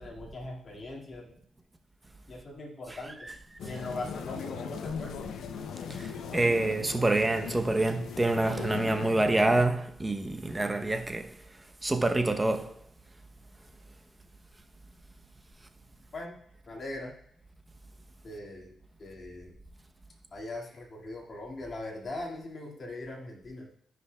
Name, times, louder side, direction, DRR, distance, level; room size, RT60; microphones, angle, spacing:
voice 1, 0.0-1.4 2.3-3.3 3.6-5.1 16.1-16.4 16.7-17.1 18.2-18.7 19.0-19.5 20.3-23.7, left 2 dB, 45° left, 2.0 m, -40 dB
sound 1, 3.6-9.6, left 6 dB, 85° left, 0.5 m, -39 dB
voice 2, 5.9-11.4 11.8-12.7, right 2 dB, 20° right, 0.7 m, -27 dB
13.0 x 5.2 x 2.2 m
cardioid pair, 80°, 0 cm